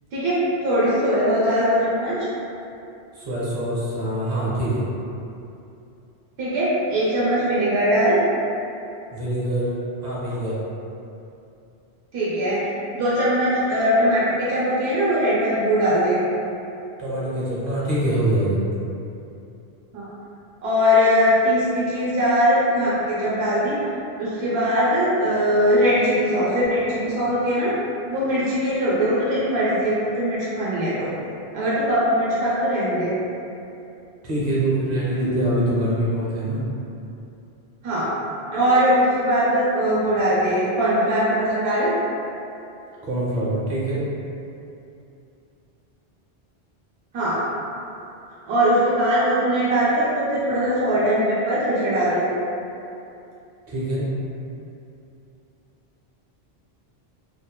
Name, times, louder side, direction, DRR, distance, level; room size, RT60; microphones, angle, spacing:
voice 1, 0.1-2.3 6.4-8.2 12.1-16.2 19.9-20.1 20.6-23.9 24.2-27.7 28.1-31.1 31.5-33.2 37.8-38.1 38.5-41.9 47.1-47.4 48.5-52.3, equal, 85° right, -9 dB, 0.9 m, -21 dB
voice 2, 3.1-4.9 9.1-9.7 10.0-10.6 17.0-18.6 34.2-36.6 43.0-44.1 53.7-54.1, right 1 dB, 45° right, -8 dB, 0.8 m, -24 dB
2.8 x 2.1 x 2.3 m, 2.7 s
omnidirectional pair, 1.0 m